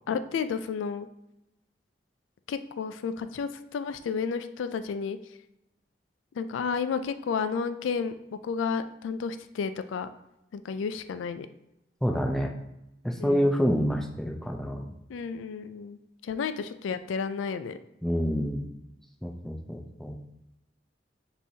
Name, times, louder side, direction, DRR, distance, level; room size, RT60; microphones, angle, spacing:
voice 1, 0.1-1.1 2.5-5.2 6.4-8.2 8.4-10.1 10.5-11.5 13.2-13.5 15.1-17.8, left 6 dB, 85° left, 11 dB, 0.3 m, -31 dB
voice 2, 12.0-12.5 13.0-14.8 18.0-18.6 19.2-20.2, equal, ahead, 1 dB, 0.4 m, -27 dB
5.3 x 3.1 x 2.7 m, 0.86 s
head